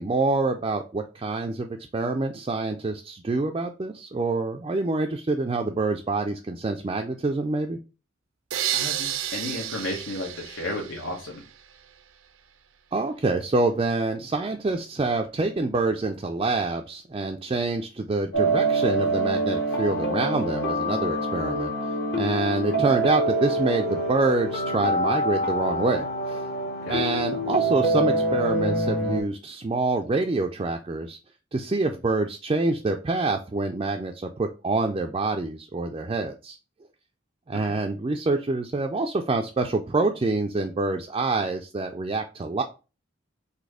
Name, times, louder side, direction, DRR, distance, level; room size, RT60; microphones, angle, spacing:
voice 1, 0.0-7.8 12.9-21.7 22.2-26.5 26.9-31.2 31.5-36.6 37.5-42.6, right 3 dB, 25° right, 3 dB, 0.3 m, -26 dB
sound 1, 8.5-11.5, right 11 dB, 80° right, 0.5 m, -31 dB
voice 2, 8.7-11.4 26.8-27.2 37.6-37.7, left 1 dB, 85° left, -2 dB, 1.2 m, -33 dB
sound 2, 18.3-29.2, right 1 dB, 55° left, 1.1 m, -25 dB
4.1 x 2.7 x 4.8 m, 0.32 s
head